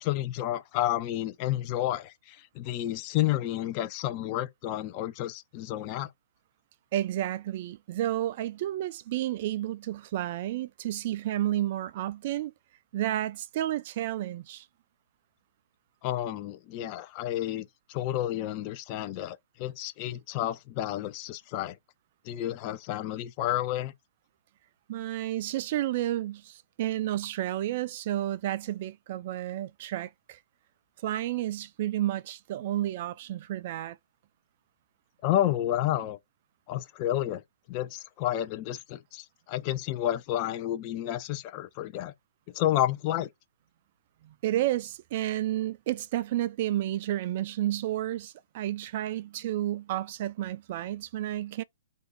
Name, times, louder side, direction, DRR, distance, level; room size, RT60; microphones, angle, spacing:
voice 1, 0.0-6.1 16.0-21.8 22.2-23.9 35.2-36.2 36.7-37.4 37.7-42.1 42.5-43.3, left 13 dB, 35° left, 0.5 m, -30 dB
voice 2, 6.9-12.5 12.9-14.7 24.9-30.4 31.0-34.0 44.2-51.6, right 13 dB, 45° right, 0.3 m, -31 dB
2.6 x 2.2 x 3.9 m
hypercardioid pair, 125°, 0 cm